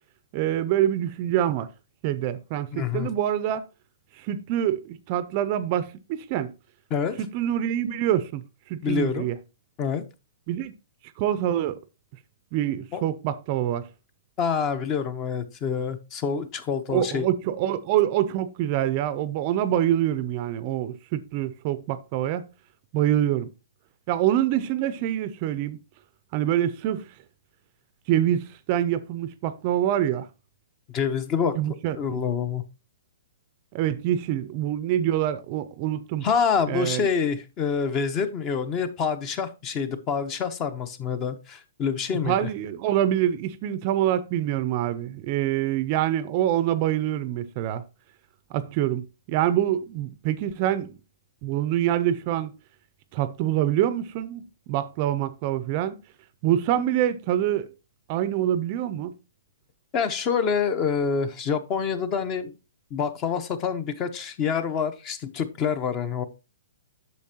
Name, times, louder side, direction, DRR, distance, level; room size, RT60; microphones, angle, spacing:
voice 1, 0.3-1.7 2.0-3.6 4.2-6.5 7.2-8.4 8.7-9.4 10.5-10.7 11.2-11.8 12.5-13.9 16.9-22.5 22.9-23.5 24.1-25.8 26.3-27.0 28.1-30.3 31.6-32.2 33.7-36.3 36.7-37.1 42.2-47.8 48.5-50.9 51.4-52.5 53.1-56.0 56.4-57.7 58.1-59.1, right 11 dB, 35° right, 0.5 m, -25 dB
voice 2, 2.7-3.1 6.9-7.2 8.8-9.3 9.8-10.0 12.9-13.0 14.4-17.2 30.9-31.6 32.0-32.6 36.2-42.5 59.9-62.5 62.9-66.2, left 6 dB, 25° left, 0.7 m, -26 dB
8.3 x 6.7 x 2.8 m
hypercardioid pair, 160°, 0 cm